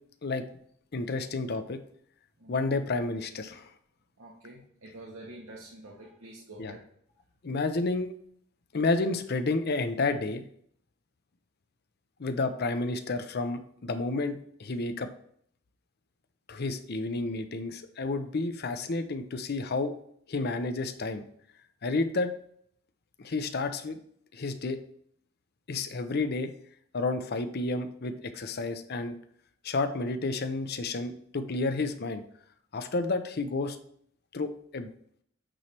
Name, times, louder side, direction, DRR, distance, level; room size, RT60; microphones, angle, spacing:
voice 1, 0.9-1.8 2.5-3.7 6.6-6.8 7.4-8.1 8.7-10.4 12.2-15.1 16.5-19.9 20.3-21.2 21.8-22.3 23.2-24.0 24.3-24.8 25.7-26.5 26.9-29.1 29.6-32.2 32.7-33.8 34.3-34.9, left 3 dB, 50° left, 9 dB, 0.6 m, -30 dB
voice 2, 2.4-2.7 4.2-6.8, right 1 dB, 65° right, -2 dB, 1.1 m, -47 dB
8.8 x 3.2 x 4.4 m, 0.64 s
head